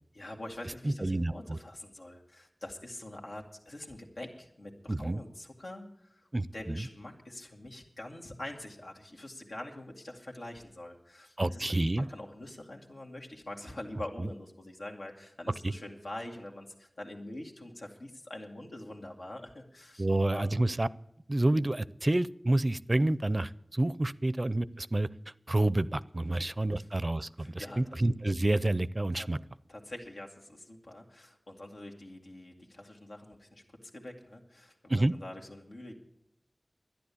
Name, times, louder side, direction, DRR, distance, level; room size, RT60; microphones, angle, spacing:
voice 1, 0.1-20.6 26.3-26.4 26.7-26.9 27.4-27.8 29.1-29.3 29.7-35.9, left 1 dB, 90° left, 1 dB, 2.2 m, -45 dB
voice 2, 0.8-1.6 4.9-5.2 6.3-6.8 11.4-12.1 14.2-14.3 15.6-15.7 20.0-20.9 21.3-25.1 25.5-29.4 34.9-35.1, right 1 dB, 40° right, 18 dB, 0.5 m, -29 dB
12.0 x 10.0 x 8.4 m, 0.78 s
wide cardioid pair, 55°, 0 cm